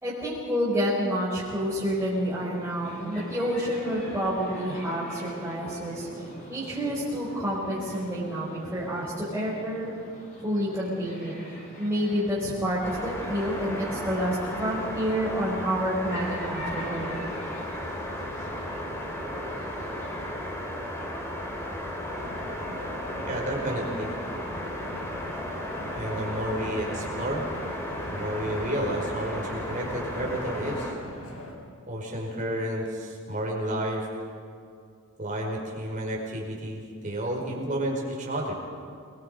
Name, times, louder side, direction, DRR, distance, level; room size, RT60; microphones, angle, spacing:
voice 1, 0.0-6.1 6.5-9.9 10.4-17.2, equal, 10° right, -9 dB, 4.9 m, -29 dB
sound 1, 1.4-20.3, equal, 35° left, 6.3 m, -43 dB
sound 2, 12.8-30.9, equal, 10° left, 3.0 m, -35 dB
sound 3, 22.0-31.5, left 1 dB, 85° left, 5.1 m, -41 dB
voice 2, 23.3-24.1 25.9-27.4 28.1-30.9 31.9-34.0 35.2-38.5, right 1 dB, 35° right, -1 dB, 4.8 m, -31 dB
28.5 x 21.5 x 5.5 m, 2.3 s
head